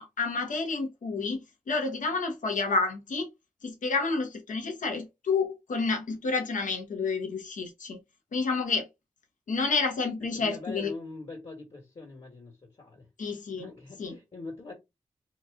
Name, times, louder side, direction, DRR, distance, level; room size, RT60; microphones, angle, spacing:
voice 1, 0.0-1.4 1.7-3.3 3.6-8.0 8.3-8.9 9.5-10.9 13.2-13.6 14.0-14.1, left 4 dB, 80° left, 0.9 m, -29 dB
voice 2, 10.3-13.1 13.6-14.7, left 3 dB, 50° left, 1.5 m, -43 dB
2.9 x 2.5 x 3.6 m
cardioid pair, 45°, 13 cm